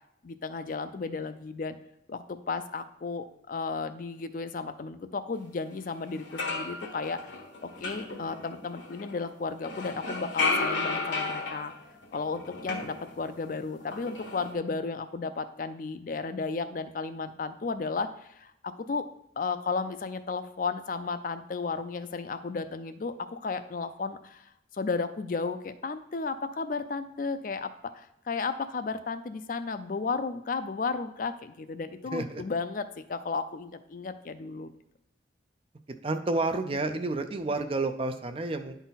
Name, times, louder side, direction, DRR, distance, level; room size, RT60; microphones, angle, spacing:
voice 1, 0.2-1.8 2.1-7.2 7.6-11.7 12.1-19.1 19.4-34.7, left 4 dB, 45° left, 11 dB, 0.4 m, -34 dB
sound 1, 5.7-5.8 6.1-9.2 9.6-13.5 13.8-14.5, left 3 dB, 75° left, 1.2 m, -34 dB
voice 2, 32.1-32.4 36.0-38.7, right 2 dB, 30° right, 8 dB, 0.4 m, -30 dB
10.0 x 4.0 x 4.0 m, 0.82 s
head